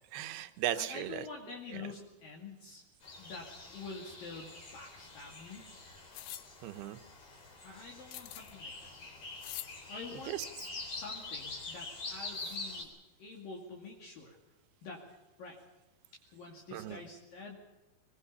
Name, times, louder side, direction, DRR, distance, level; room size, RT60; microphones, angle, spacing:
voice 1, 0.1-1.2 1.7-1.9 6.6-7.0 9.7-9.8 10.3-10.5 16.7-17.0, right 12 dB, 75° right, 9 dB, 2.8 m, -37 dB
voice 2, 0.8-2.8 3.2-5.6 7.6-8.7 9.9-10.4 10.8-12.9 13.2-14.4 14.8-15.0 15.4-15.6 16.3-17.5, left 4 dB, 60° left, -1 dB, 3.9 m, -47 dB
sound 1, 3.0-12.8, left 3 dB, 45° left, 4.9 m, -45 dB
sound 2, 6.1-6.5 8.1-8.6 9.4-9.7, left 14 dB, 75° left, 2.5 m, -44 dB
22.5 x 22.0 x 5.6 m, 1.1 s
omnidirectional pair, 5.0 m